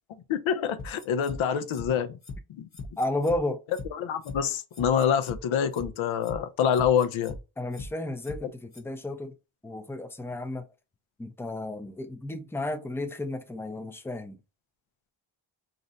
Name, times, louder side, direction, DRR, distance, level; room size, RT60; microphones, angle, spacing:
voice 1, 0.3-2.2 2.6-2.7 4.0-7.4, left 8 dB, 75° left, 0.6 m, -26 dB
sound 1, 0.8-1.4 1.7-1.9 2.2-2.4 2.7-3.4 3.7-3.9 4.2-4.4 4.7-5.4 5.7-5.9 6.2-6.4 6.7-7.4 7.7-7.9 8.2-8.4 8.7-8.8, left 3 dB, 35° left, 0.9 m, -39 dB
voice 2, 3.0-3.6 7.6-9.3 9.6-10.6 11.2-14.4, left 1 dB, 5° left, 0.4 m, -32 dB
2.6 x 2.1 x 3.9 m
cardioid pair, 70°, 49 cm